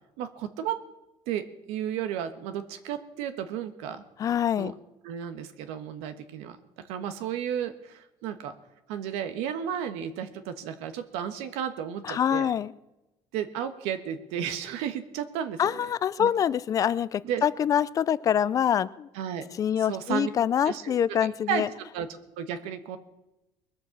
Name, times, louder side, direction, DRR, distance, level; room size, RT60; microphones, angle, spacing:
voice 1, 0.2-0.8 1.3-4.0 4.4-4.7 5.0-6.6 6.9-8.5 8.9-12.5 13.3-15.9 16.2-16.3 17.2-17.4 19.1-19.5 19.8-20.3 20.6-21.6 21.9-22.1 22.4-23.0, right 9 dB, 90° right, 9 dB, 1.4 m, -33 dB
voice 2, 4.2-4.7 12.0-12.7 15.6-19.1 19.6-21.7, left 9 dB, 35° left, 18 dB, 0.5 m, -25 dB
21.0 x 7.5 x 7.2 m, 0.95 s
cardioid pair, 140°, 10 cm